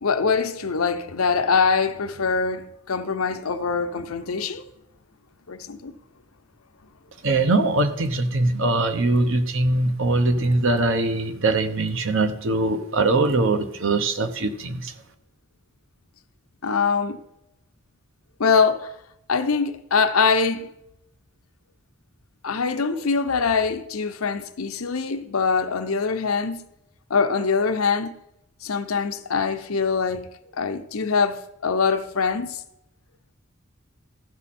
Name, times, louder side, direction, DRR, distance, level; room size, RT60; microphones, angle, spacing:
voice 1, 0.0-4.6 5.5-5.9 16.6-17.2 18.4-18.9 19.3-20.7 22.4-26.6 27.1-28.2 28.6-32.6, left 5 dB, 85° left, 0.7 m, -23 dB
voice 2, 7.2-14.9, right 2 dB, 65° right, 0.9 m, -22 dB
15.0 x 6.2 x 4.3 m
head